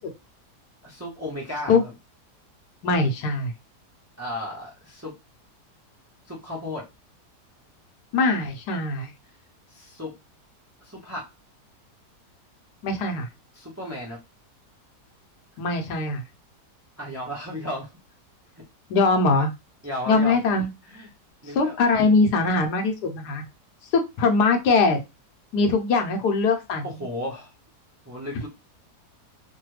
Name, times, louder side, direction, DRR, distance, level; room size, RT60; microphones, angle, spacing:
voice 1, 0.8-1.9 4.2-5.1 6.3-6.8 9.7-10.1 10.8-11.3 13.5-14.2 17.0-17.9 19.8-20.4 20.9-21.1 21.4-21.8 26.8-27.5 28.0-28.5, left 1 dB, 20° right, -4 dB, 0.4 m, -34 dB
voice 2, 2.8-3.5 8.1-9.1 12.8-13.3 15.6-16.2 18.9-19.5 20.1-20.7 21.5-23.4 23.9-25.0 25.5-27.0, left 3 dB, 80° left, 5 dB, 1.3 m, -21 dB
3.2 x 2.2 x 3.1 m, 0.24 s
omnidirectional pair, 1.8 m